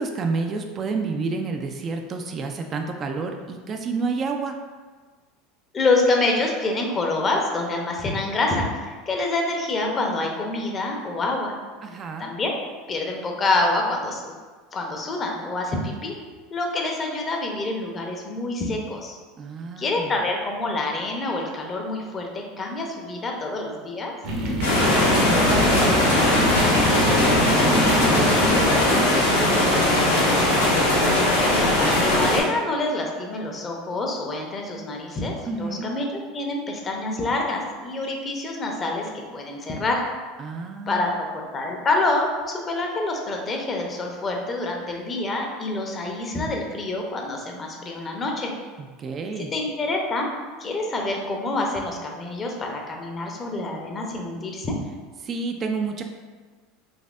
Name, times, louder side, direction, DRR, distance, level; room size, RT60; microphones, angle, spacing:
voice 1, 0.0-4.6 11.8-12.3 19.4-20.1 24.7-30.3 35.5-35.9 40.4-41.2 48.8-49.5 55.2-56.0, right 4 dB, 35° right, 4 dB, 0.3 m, -30 dB
voice 2, 5.7-11.5 12.2-12.5 12.9-14.4 14.7-16.2 16.5-19.2 19.8-24.1 31.5-40.0 40.9-48.5 49.4-50.3 50.6-54.8, left 2 dB, 30° left, 1 dB, 0.7 m, -27 dB
sound 1, 24.2-29.3, equal, 55° right, 0.8 m, -26 dB
Heavy Rain - Metal Roof, 24.6-32.4, left 1 dB, 90° left, 0.8 m, -19 dB
4.0 x 2.6 x 2.5 m, 1.4 s
hypercardioid pair, 85°, 0 cm